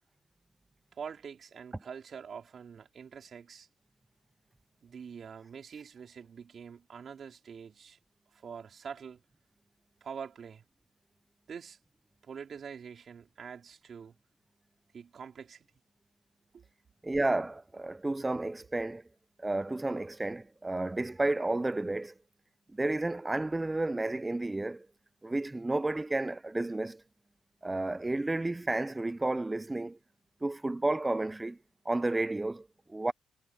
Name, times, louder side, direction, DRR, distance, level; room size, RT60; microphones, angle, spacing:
voice 1, 0.9-3.7 4.8-8.0 8.3-9.2 10.0-10.6 11.5-11.8 12.2-14.1 14.9-15.7 16.5-16.6, right 6 dB, 50° right, 4.2 m, -45 dB
voice 2, 17.0-19.0 19.4-22.1 22.7-24.9 25.2-27.0 27.6-30.0 30.4-31.6 31.9-33.1, right 2 dB, 15° right, 0.6 m, -31 dB
cardioid pair, 90°, 0 cm